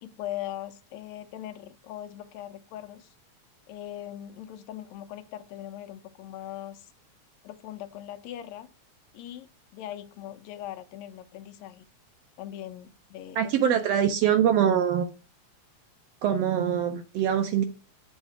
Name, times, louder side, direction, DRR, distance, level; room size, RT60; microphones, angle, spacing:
voice 1, 0.0-3.1 3.7-6.9 7.4-8.7 9.1-11.9 12.4-13.8, left 12 dB, 80° left, 1.8 m, -40 dB
voice 2, 13.3-15.1 16.2-17.6, right 9 dB, 80° right, 1.5 m, -23 dB
8.0 x 3.2 x 5.8 m
omnidirectional pair, 3.3 m